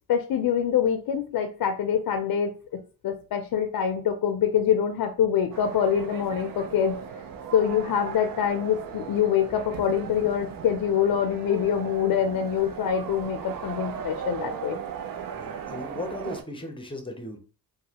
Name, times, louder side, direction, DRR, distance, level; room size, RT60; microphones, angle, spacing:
voice 1, 0.1-7.0 7.5-14.8, left 8 dB, 60° left, 5 dB, 0.5 m, -25 dB
sound 1, 5.5-16.4, right 7 dB, 60° right, 0.5 m, -37 dB
voice 2, 15.3-17.4, left 2 dB, 15° left, 4 dB, 0.7 m, -37 dB
3.0 x 2.2 x 2.8 m, 0.37 s
cardioid pair, 85°, 39 cm